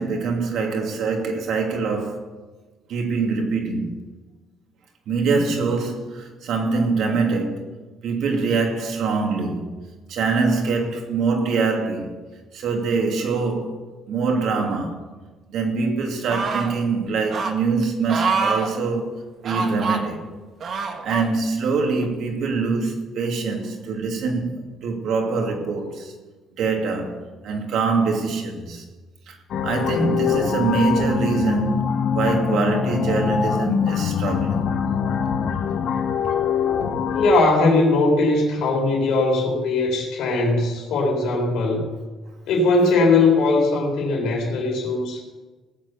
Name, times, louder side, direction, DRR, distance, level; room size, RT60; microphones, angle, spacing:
voice 1, 0.0-2.2 2.9-3.9 5.1-7.7 8.0-9.8 10.1-12.2 12.5-13.8 14.1-15.0 15.5-20.2 20.7-26.1 26.6-28.8 29.3-29.4 29.6-34.6, right 4 dB, 65° right, 2.6 m, -24 dB
sound 1, 16.3-16.8 17.3-17.5 18.1-18.7 19.4-20.0 20.6-21.3 22.0-22.1, right 4 dB, 45° right, 1.5 m, -25 dB
sound 2, 29.5-37.3, left 7 dB, 60° left, 1.1 m, -23 dB
voice 2, 37.1-41.8 42.5-45.2, left 3 dB, 80° left, 4.0 m, -19 dB
18.0 x 7.5 x 7.0 m
cardioid pair, 130°, 0 cm